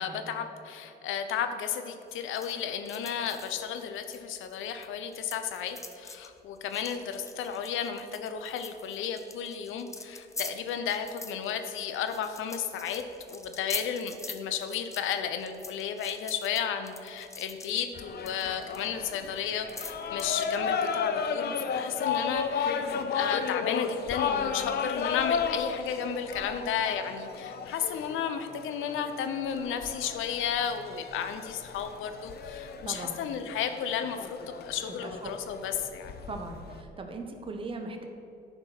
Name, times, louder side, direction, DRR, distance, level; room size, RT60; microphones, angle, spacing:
voice 1, 0.0-36.2, left 8 dB, 85° left, 8 dB, 0.8 m, -33 dB
sound 1, 2.1-4.9 5.1-20.9, left 3 dB, 15° left, 0.7 m, -44 dB
sound 2, 17.9-36.8, left 6 dB, 55° left, 0.7 m, -34 dB
voice 2, 32.8-33.2 34.9-35.3 36.3-38.0, right 3 dB, 25° right, 4 dB, 1.0 m, -39 dB
11.0 x 4.5 x 6.1 m, 2.6 s
cardioid pair, 90°, 20 cm